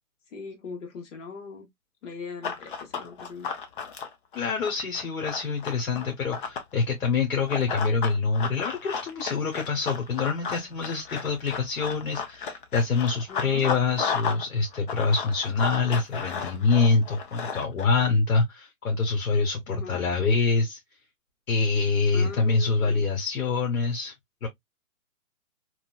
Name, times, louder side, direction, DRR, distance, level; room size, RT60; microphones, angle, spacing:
voice 1, 0.3-1.7 2.0-3.5 10.4-10.7 13.3-13.6 19.7-20.0 22.1-23.0, left 5 dB, 55° left, 1.4 m, -40 dB
Run, 2.4-6.7 7.5-14.4 14.7-17.8, left 6 dB, 40° left, 0.6 m, -33 dB
voice 2, 4.3-20.8 21.5-24.1 24.4-24.5, left 4 dB, 85° left, 1.0 m, -25 dB
3.0 x 2.4 x 2.2 m
hypercardioid pair, 140°, 43 cm